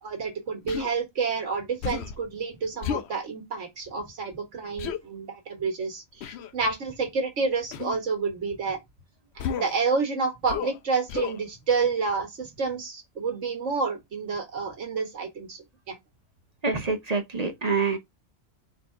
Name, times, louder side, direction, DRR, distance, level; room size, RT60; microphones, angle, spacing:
voice 1, 0.0-8.8 9.4-16.0, right 4 dB, 85° right, 1.7 m, -29 dB
Human voice, 0.7-0.9 1.8-2.2 2.8-3.1 4.8-5.0 6.2-6.5 7.7-8.0 9.4-9.8 10.5-10.8 11.1-11.4, left 8 dB, 70° left, 0.8 m, -32 dB
voice 2, 16.6-18.0, right 4 dB, 40° right, 0.7 m, -26 dB
4.2 x 2.7 x 4.4 m
omnidirectional pair, 1.2 m